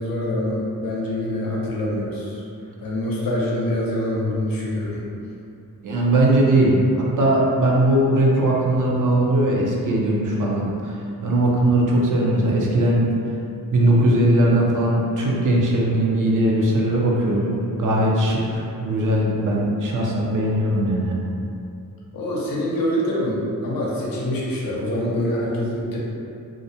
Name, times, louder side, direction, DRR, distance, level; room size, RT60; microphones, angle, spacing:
voice 1, 0.0-2.4 2.8-5.0 22.1-26.0, left 1 dB, 70° left, -5 dB, 0.6 m, -25 dB
voice 2, 5.8-11.0 11.2-13.1 13.7-21.2, right 1 dB, 60° right, -3 dB, 0.5 m, -19 dB
2.4 x 2.0 x 2.7 m, 2.6 s
wide cardioid pair, 85°, 36 cm